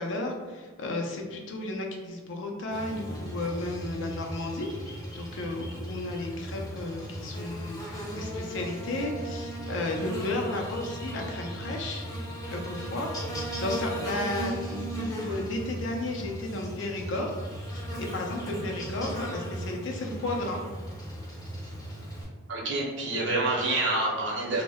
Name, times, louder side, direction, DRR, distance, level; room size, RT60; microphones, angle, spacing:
voice 1, 0.0-7.8 8.1-12.1 12.5-13.1 13.5-17.4 17.7-20.6, left 2 dB, 65° left, 1 dB, 0.4 m, -33 dB
Buzz, 2.7-22.2, right 1 dB, 20° left, 0.5 m, -37 dB
voice 2, 22.5-24.6, right 2 dB, 65° right, -2 dB, 0.7 m, -27 dB
2.1 x 2.1 x 3.4 m, 1.4 s
head